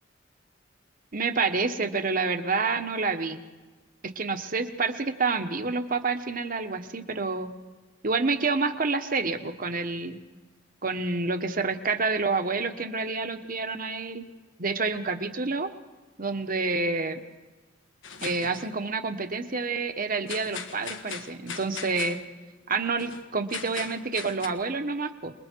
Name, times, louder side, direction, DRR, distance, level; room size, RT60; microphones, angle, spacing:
voice 1, 1.1-3.4 4.0-7.5 8.0-10.2 10.8-14.2 14.6-15.7 16.2-17.2 18.2-22.2 22.7-25.3, right 4 dB, 50° right, 7 dB, 1.3 m, -28 dB
sound 1, 18.0-18.7 20.3-22.2 23.0-23.3 23.5-24.5, left 6 dB, 85° left, 1.5 m, -39 dB
28.5 x 21.0 x 4.7 m, 1.2 s
head